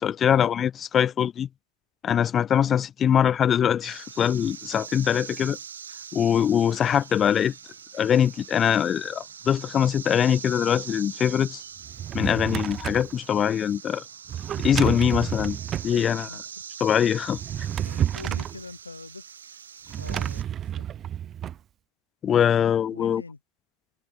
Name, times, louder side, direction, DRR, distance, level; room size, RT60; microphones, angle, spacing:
voice 1, 0.0-1.5 2.0-5.6 6.1-7.5 7.9-11.6 12.1-14.0 14.6-15.6 15.8-16.3 16.8-17.4 22.2-23.2, left 9 dB, 25° left, 0.7 m, -22 dB
sound 1, 3.8-20.4, right 7 dB, 70° right, 2.9 m, -43 dB
Drawer open or close, 11.8-13.1 14.3-15.9 17.3-18.6 19.9-21.6, right 10 dB, 25° right, 0.5 m, -30 dB
voice 2, 15.9-16.4 17.8-19.3 20.0-20.4 20.8-20.9 22.9-23.4, left 3 dB, 80° left, 5.8 m, -42 dB
figure-of-eight pair, 90°, 0 cm